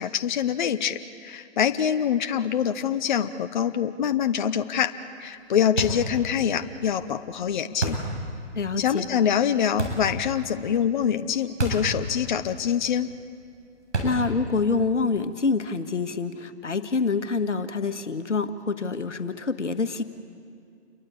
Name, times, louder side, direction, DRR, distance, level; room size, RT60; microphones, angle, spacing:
voice 1, 0.0-4.9 5.2-8.0 8.8-13.1, left 8 dB, 40° left, 10 dB, 0.9 m, -25 dB
sound 1, 5.8-6.1 7.8-8.2 9.8-10.1 11.6-11.9 12.2-12.3 13.9-14.3, right 3 dB, 75° right, 7.8 m, -28 dB
voice 2, 8.5-9.1 14.0-20.0, left 4 dB, 80° left, 10 dB, 1.7 m, -26 dB
28.5 x 23.5 x 8.7 m, 2.3 s
figure-of-eight pair, 145°, 35 cm